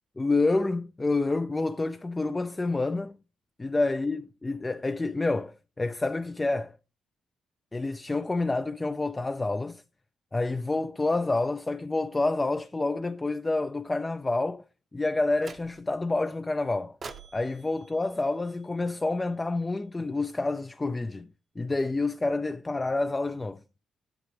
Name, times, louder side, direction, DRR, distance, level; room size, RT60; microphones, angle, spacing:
voice 1, 0.2-3.2 3.6-6.8 7.7-9.8 10.3-14.6 14.9-17.0 17.3-21.3 21.6-23.6, left 2 dB, 20° left, 0.3 m, -28 dB
sound 1, 15.4-16.1 17.0-19.2, right 4 dB, 40° right, 0.7 m, -47 dB
8.2 x 7.7 x 3.2 m
cardioid pair, 90°, 0 cm